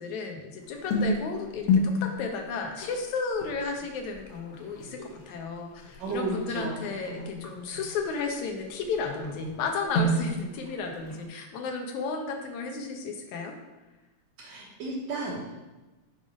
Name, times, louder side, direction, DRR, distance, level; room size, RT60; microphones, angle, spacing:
voice 1, 0.0-13.6, left 4 dB, 80° left, 3 dB, 2.3 m, -33 dB
sound 1, 0.6-11.2, left 2 dB, 55° left, 1.9 m, -32 dB
voice 2, 6.0-6.8 7.1-7.3 14.4-15.6, right 2 dB, 70° right, -6 dB, 2.4 m, -33 dB
8.8 x 3.7 x 5.1 m, 1.1 s
omnidirectional pair, 3.3 m